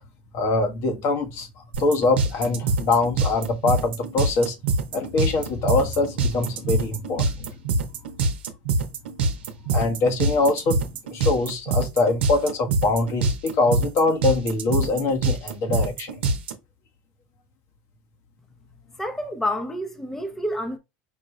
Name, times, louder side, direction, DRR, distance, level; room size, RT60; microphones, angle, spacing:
voice 1, 0.3-1.5 1.8-4.5 4.9-7.5 9.7-10.8 11.1-16.2, left 3 dB, 55° left, 1.3 m, -23 dB
sound 1, 1.7-16.5, right 3 dB, 85° right, 0.8 m, -24 dB
voice 2, 19.0-20.8, left 1 dB, 5° left, 0.8 m, -28 dB
5.3 x 2.5 x 3.2 m
supercardioid pair, 105°, 6 cm